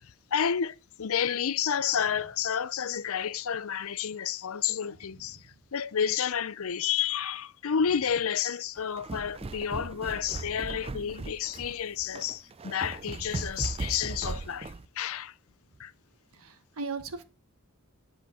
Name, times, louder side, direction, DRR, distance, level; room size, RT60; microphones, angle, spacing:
voice 1, 0.0-15.3 15.8-15.9, left 8 dB, 70° left, 0.6 m, -30 dB
sound 1, 8.8-14.8, right 3 dB, 25° right, 0.4 m, -38 dB
voice 2, 16.3-17.2, right 4 dB, 70° right, 1.4 m, -37 dB
10.5 x 5.0 x 7.6 m
head